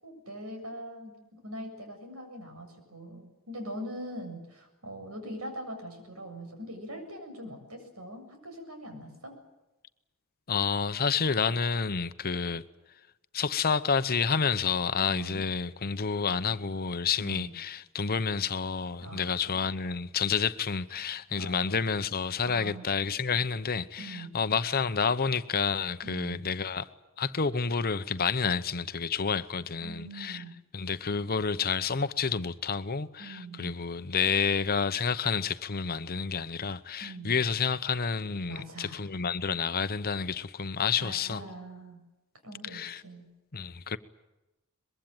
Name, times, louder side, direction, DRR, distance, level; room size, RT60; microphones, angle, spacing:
voice 1, 0.0-9.4 15.1-15.4 17.2-17.5 19.0-19.6 21.0-21.1 21.4-21.7 22.4-22.8 24.0-24.3 26.0-26.4 29.8-30.5 33.2-33.7 37.0-37.4 38.5-39.0 41.0-42.0 42.4-43.3, right 1 dB, 85° right, 7.6 m, -42 dB
voice 2, 10.5-12.6 13.3-26.9 27.2-30.4 30.7-41.4 42.7-43.0 43.5-44.0, left 5 dB, 45° left, 0.9 m, -29 dB
23.5 x 22.0 x 9.0 m
head